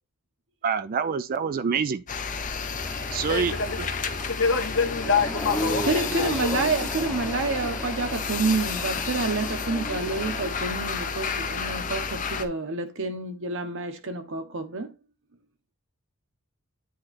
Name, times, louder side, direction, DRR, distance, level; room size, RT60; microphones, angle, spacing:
voice 1, 0.6-2.0 3.1-3.9, right 6 dB, 40° right, 0.3 m, -26 dB
sound 1, 2.1-12.5, left 5 dB, 35° left, 0.7 m, -31 dB
sound 2, 2.7-10.5, left 1 dB, 10° left, 0.9 m, -36 dB
voice 2, 3.3-3.8 4.2-6.7, left 5 dB, 55° left, 1.4 m, -26 dB
voice 3, 5.8-14.9, right 3 dB, 60° right, 1.1 m, -28 dB
8.6 x 3.1 x 4.2 m
head